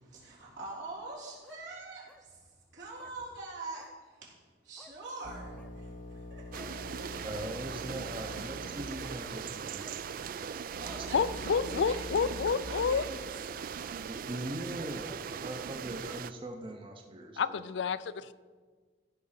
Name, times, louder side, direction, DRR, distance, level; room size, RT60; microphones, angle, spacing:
voice 1, 0.0-2.4 2.7-4.3 4.6-6.8 10.6-11.6 11.8-13.3, right 3 dB, 85° right, -5 dB, 3.5 m, -45 dB
sound 1, 1.1-1.6 2.1-2.2 2.9-3.2 3.8-3.9 4.8-4.9 5.4-5.7 6.5-6.7 7.3-7.6 8.3-8.5 9.0-9.2 9.8-10.0, left 1 dB, 5° left, 0.6 m, -56 dB
sound 2, 5.2-8.8 9.1-9.2 9.8-12.6, left 2 dB, 45° left, 0.8 m, -45 dB
sound 3, 6.5-16.3, right 7 dB, 50° right, 0.3 m, -40 dB
voice 2, 7.2-10.0 11.0-11.4 14.1-17.6, right 1 dB, 30° right, 4 dB, 0.7 m, -41 dB
voice 3, 11.1-13.1 17.4-18.3, left 6 dB, 80° left, 16 dB, 0.4 m, -29 dB
15.0 x 5.2 x 5.6 m, 1.5 s
head